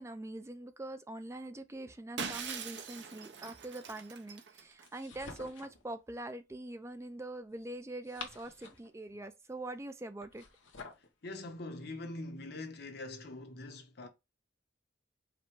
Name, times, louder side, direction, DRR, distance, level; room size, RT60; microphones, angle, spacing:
voice 1, 0.0-10.4, right 1 dB, 15° right, 0.4 m, -44 dB
Shatter, 2.2-4.9, right 6 dB, 60° right, 0.7 m, -42 dB
sound 1, 4.8-5.8 7.8-8.9 10.2-11.1, left 4 dB, 85° left, 1.0 m, -49 dB
voice 2, 11.2-14.1, left 2 dB, 55° left, 0.8 m, -43 dB
4.9 x 2.2 x 4.6 m
head